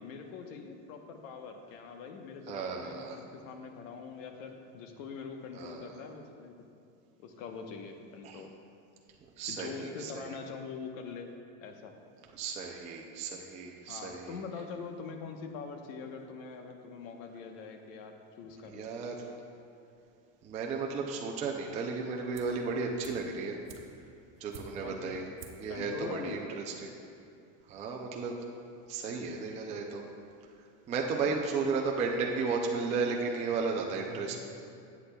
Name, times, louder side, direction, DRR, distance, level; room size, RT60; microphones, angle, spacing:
voice 1, 0.0-6.5 7.2-8.5 9.5-11.3 11.6-11.9 13.9-18.9 24.8-25.1 25.7-26.4 31.1-31.4 34.1-34.4, left 5 dB, 75° left, 4 dB, 1.0 m, -43 dB
voice 2, 2.5-3.2 5.5-5.8 8.2-8.4 9.4-10.3 12.4-14.3 18.7-19.3 20.4-23.6 24.4-25.2 25.6-26.9 27.7-28.4 28.9-30.0 30.9-34.4, right 4 dB, 20° right, 0 dB, 0.4 m, -34 dB
sound 1, 22.3-22.7 23.0-25.0 25.4-25.8 26.0-26.1, right 5 dB, 75° right, 1.2 m, -50 dB
13.5 x 8.3 x 2.3 m, 2.5 s
supercardioid pair, 145°, 41 cm